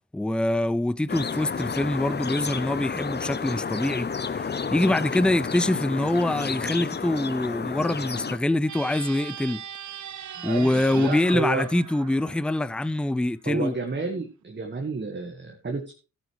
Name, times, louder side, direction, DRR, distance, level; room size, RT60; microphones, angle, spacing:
voice 1, 0.1-9.6 10.4-13.7, left 1 dB, 5° left, 0.5 m, -25 dB
sound 1, 1.1-8.4, left 5 dB, 35° left, 0.7 m, -31 dB
sound 2, 8.6-13.1, right 10 dB, 75° right, 0.8 m, -40 dB
voice 2, 10.4-11.6 13.5-15.9, right 3 dB, 35° right, 1.8 m, -31 dB
13.0 x 9.6 x 3.2 m
cardioid pair, 60°, 29 cm